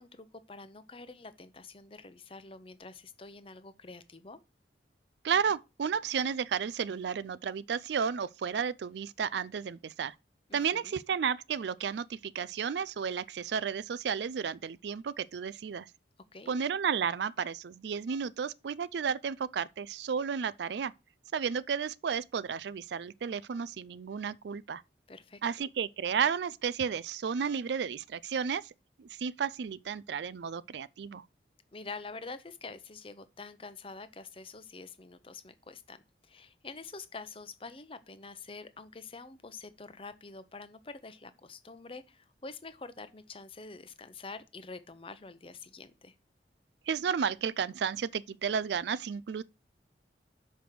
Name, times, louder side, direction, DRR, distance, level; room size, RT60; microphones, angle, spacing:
voice 1, 0.0-4.4 10.5-11.0 16.3-16.6 25.1-25.4 31.7-46.1, left 4 dB, 30° left, 0.7 m, -46 dB
voice 2, 5.2-10.1 10.5-15.9 16.5-20.9 21.3-24.8 25.4-28.7 29.0-31.2 46.9-49.4, right 6 dB, 75° right, 0.4 m, -32 dB
6.6 x 5.1 x 6.0 m
head